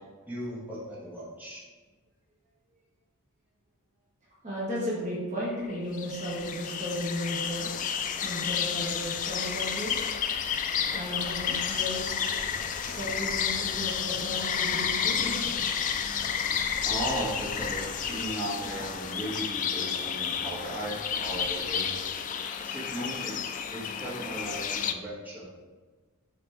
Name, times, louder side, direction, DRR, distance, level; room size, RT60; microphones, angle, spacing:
voice 1, 0.3-1.6 16.8-22.2 22.6-25.4, right 1 dB, 10° right, -8 dB, 1.6 m, -36 dB
voice 2, 4.4-7.7 8.2-10.0 10.9-15.9, equal, 35° right, -7 dB, 1.3 m, -35 dB
sound 1, 5.4-24.9, left 7 dB, 35° left, 0.3 m, -31 dB
6.8 x 4.0 x 3.5 m, 1.3 s
head